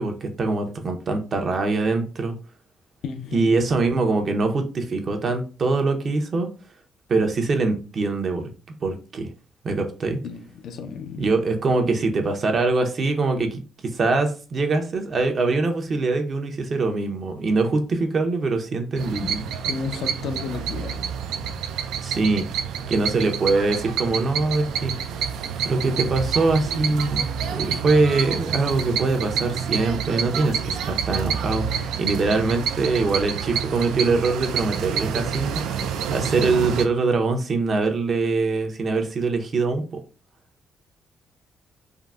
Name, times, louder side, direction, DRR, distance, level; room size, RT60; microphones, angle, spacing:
voice 1, 0.0-2.3 3.3-6.5 7.1-8.5 8.8-9.3 9.6-10.2 11.2-19.4 22.0-22.5 22.9-25.3 25.6-27.2 27.5-35.6 36.1-40.0, right 3 dB, 50° right, 0.6 m, -23 dB
voice 2, 3.0-3.6 10.2-11.3 19.2-19.4 19.7-21.6, left 6 dB, 70° left, 0.4 m, -33 dB
sound 1, 19.0-36.9, right 7 dB, 85° right, 0.3 m, -28 dB
3.6 x 2.0 x 2.3 m
cardioid pair, 90°, 0 cm